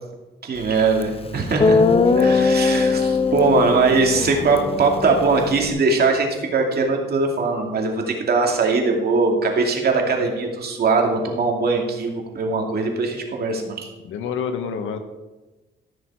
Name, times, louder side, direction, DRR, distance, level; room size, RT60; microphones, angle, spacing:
voice 1, 0.4-1.8 2.2-13.9, right 4 dB, 55° right, 1 dB, 2.5 m, -21 dB
Guitar, 1.0-1.1 1.6-5.7, left 4 dB, 30° left, 0.7 m, -20 dB
voice 2, 14.0-15.0, left 6 dB, 85° left, 8 dB, 1.2 m, -28 dB
13.5 x 6.5 x 4.7 m, 1.1 s
cardioid pair, 90°, 20 cm